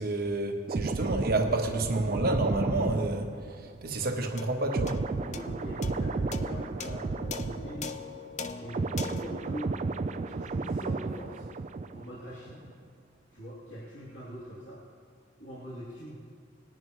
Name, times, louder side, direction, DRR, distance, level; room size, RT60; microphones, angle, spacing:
voice 1, 0.0-3.3 3.6-5.0, right 2 dB, 55° right, 3 dB, 1.2 m, -29 dB
sound 1, 0.7-8.2 8.4-12.2 12.5-12.7, right 3 dB, 40° right, 0.3 m, -33 dB
sound 2, 4.4-11.0, left 5 dB, 40° left, 0.5 m, -43 dB
voice 2, 5.2-8.0 8.6-9.7 10.2-11.5 11.9-12.7 13.3-14.8 15.4-16.1, equal, 75° left, -9 dB, 2.8 m, -42 dB
19.5 x 10.5 x 3.1 m, 2.2 s
head